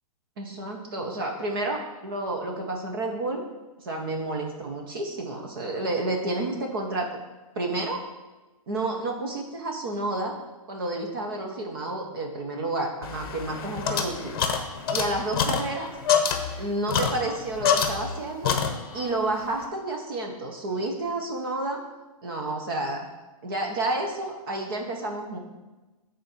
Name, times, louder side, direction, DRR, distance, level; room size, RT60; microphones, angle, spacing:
voice 1, 0.4-3.4 3.8-7.1 7.5-8.0 8.7-10.3 10.7-14.3 14.9-15.9 16.6-18.6 18.9-21.8 22.2-23.1 23.4-25.4, right 2 dB, 40° right, 2 dB, 1.1 m, -30 dB
sound 1, 13.0-18.2 18.4-19.1, left 6 dB, 40° left, 1.0 m, -26 dB
8.1 x 4.3 x 5.9 m, 1.1 s
hypercardioid pair, 175°, 19 cm